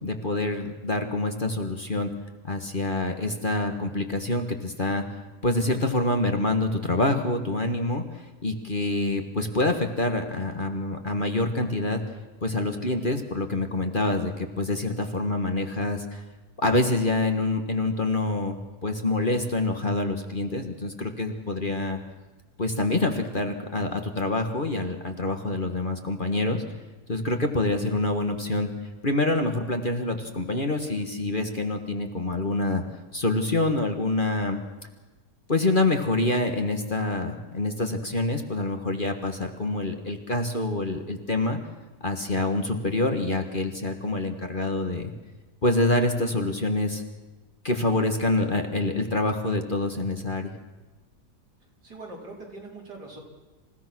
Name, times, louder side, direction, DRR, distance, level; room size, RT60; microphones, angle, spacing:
voice 1, 0.0-2.1 2.4-5.0 5.4-8.0 8.4-12.0 12.4-16.2 16.6-18.6 18.8-22.0 22.6-26.6 27.1-28.7 29.0-32.8 33.1-34.6 35.5-41.6 42.0-45.1 45.6-47.0 47.6-50.5, left 2 dB, 30° left, 5 dB, 1.6 m, -26 dB
voice 2, 51.8-53.2, right 2 dB, 75° right, -1 dB, 4.9 m, -42 dB
27.5 x 16.5 x 6.2 m, 1.2 s
omnidirectional pair, 1.8 m